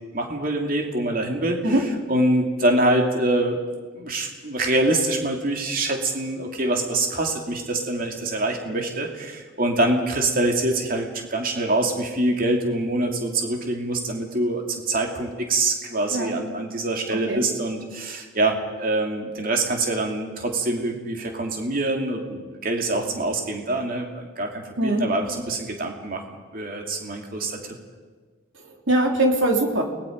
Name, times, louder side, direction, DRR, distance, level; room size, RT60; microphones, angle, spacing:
voice 1, 0.1-1.6 2.1-3.6 3.9-26.2 26.5-27.7, right 2 dB, 45° right, 2 dB, 2.7 m, -25 dB
voice 2, 17.1-17.4 24.8-25.1 28.5-29.8, right 1 dB, 80° right, 2 dB, 3.1 m, -22 dB
29.5 x 20.0 x 5.3 m, 1.4 s
head